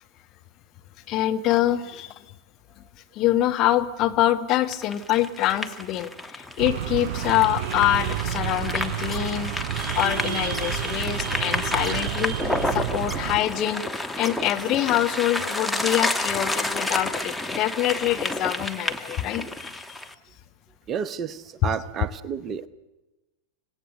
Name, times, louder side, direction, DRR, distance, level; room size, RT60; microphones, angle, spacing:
voice 1, 1.1-2.2 3.1-9.5 9.9-12.4 12.7-13.8 14.1-19.7 21.6-21.7, left 13 dB, 35° left, 7 dB, 1.4 m, -25 dB
sound 1, 4.7-20.1, left 1 dB, 5° left, 1.4 m, -30 dB
sound 2, 6.6-13.4, right 11 dB, 45° right, 5.3 m, -30 dB
voice 2, 20.9-22.7, right 7 dB, 25° right, 15 dB, 0.9 m, -31 dB
27.0 x 17.5 x 6.7 m, 1.1 s
figure-of-eight pair, 90°, 0 cm